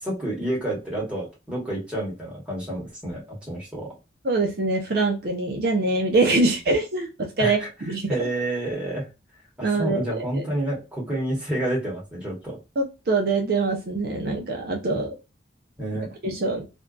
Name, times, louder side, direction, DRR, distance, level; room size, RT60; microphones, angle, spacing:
voice 1, 0.0-3.9 7.4-7.7 8.1-9.1 9.6-12.6 15.8-16.1, right 1 dB, 5° right, -5 dB, 1.1 m, -29 dB
voice 2, 4.2-7.1 7.4-7.6 7.9-8.0 9.6-10.4 12.8-15.2 16.2-16.6, right 3 dB, 55° right, 1 dB, 0.5 m, -23 dB
2.5 x 2.2 x 2.3 m, 0.28 s
head